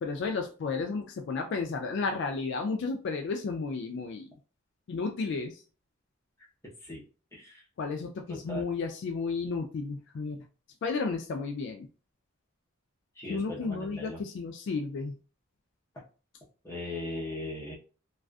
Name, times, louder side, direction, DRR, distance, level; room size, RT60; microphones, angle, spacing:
voice 1, 0.0-4.3 4.9-5.6 7.8-10.4 10.8-11.9 13.3-15.1, left 4 dB, 60° left, 3 dB, 0.3 m, -32 dB
voice 2, 8.3-8.7 13.2-14.2 16.6-17.8, left 2 dB, 15° left, -4 dB, 0.8 m, -38 dB
2.4 x 2.4 x 2.3 m, 0.36 s
head